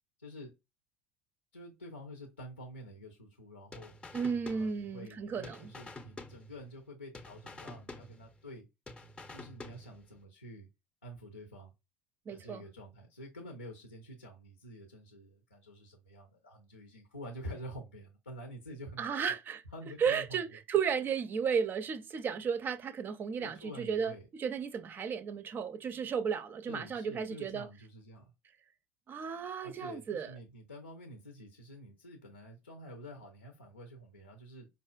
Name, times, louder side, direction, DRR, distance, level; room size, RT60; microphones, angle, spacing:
voice 1, 0.2-0.5 1.5-3.9 4.5-8.7 9.3-10.7 11.0-11.7 12.3-19.1 19.7-20.6 23.4-24.3 26.7-28.3 29.6-34.7, equal, 90° left, 0.7 m, -48 dB
sound 1, 3.7-5.2 5.4-6.9 7.1-8.6 8.9-10.2, left 2 dB, 15° left, 0.6 m, -49 dB
voice 2, 4.1-5.7 12.3-12.6 19.0-19.6 20.0-27.7 29.1-30.3, right 6 dB, 35° right, 0.4 m, -34 dB
5.2 x 2.4 x 2.2 m
figure-of-eight pair, 70°, 6 cm